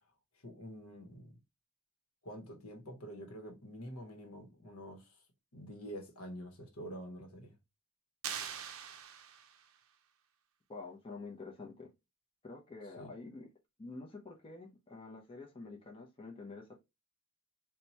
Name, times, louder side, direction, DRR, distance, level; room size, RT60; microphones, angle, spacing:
voice 1, 0.4-1.4 2.2-5.1 5.5-7.5 13.0-13.1, equal, 70° left, 1.0 m, -47 dB
sound 1, 8.2-9.8, right 8 dB, 65° right, 0.5 m, -43 dB
voice 2, 10.7-11.9 12.4-13.5 13.8-16.8, left 3 dB, 25° left, 0.6 m, -48 dB
2.9 x 2.2 x 4.0 m
head